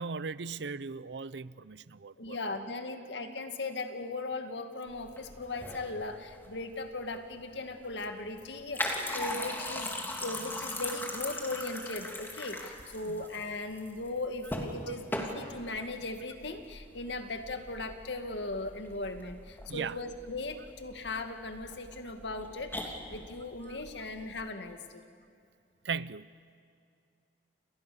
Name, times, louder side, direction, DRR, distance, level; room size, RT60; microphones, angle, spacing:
voice 1, 0.0-2.4 13.0-13.3 14.9-15.0 19.7-20.0 23.6-23.8 25.8-26.3, right 5 dB, 85° right, 0.7 m, -38 dB
voice 2, 2.2-10.0 10.2-25.0, left 2 dB, 90° left, 2.1 m, -38 dB
sound 1, 4.9-24.4, left 1 dB, 10° left, 3.1 m, -40 dB
29.5 x 28.5 x 7.0 m
head